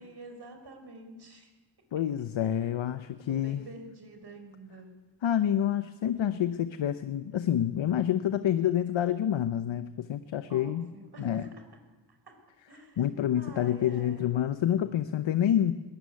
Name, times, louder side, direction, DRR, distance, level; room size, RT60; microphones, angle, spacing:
voice 1, 0.0-1.5 2.4-2.7 3.2-4.9 10.5-11.5 12.1-12.3 12.7-13.1 13.3-14.3, right 2 dB, 60° right, 6 dB, 4.8 m, -47 dB
voice 2, 1.9-3.6 5.2-10.9 11.2-11.5 13.0-15.7, left 10 dB, 90° left, 11 dB, 0.9 m, -28 dB
21.0 x 14.0 x 9.6 m, 1.2 s
cardioid pair, 65°, 45 cm